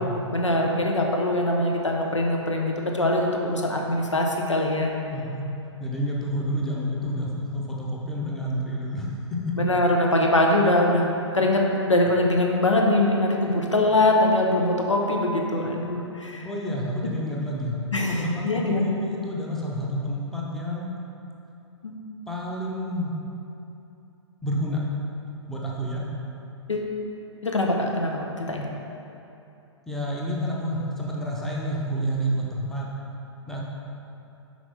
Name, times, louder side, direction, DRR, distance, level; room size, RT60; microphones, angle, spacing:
voice 1, 0.3-4.9 9.6-16.5 17.9-19.0 21.8-21.9 26.7-26.9 27.4-28.7, left 1 dB, 85° left, 0 dB, 0.9 m, -23 dB
voice 2, 5.1-5.5 5.8-9.5 16.4-17.8 18.1-20.9 22.3-23.1 24.4-24.8 25.5-26.1 29.9-32.9 33.5-33.6, equal, ahead, -4 dB, 0.7 m, -29 dB
6.0 x 4.6 x 4.2 m, 2.8 s
figure-of-eight pair, 115°, 15 cm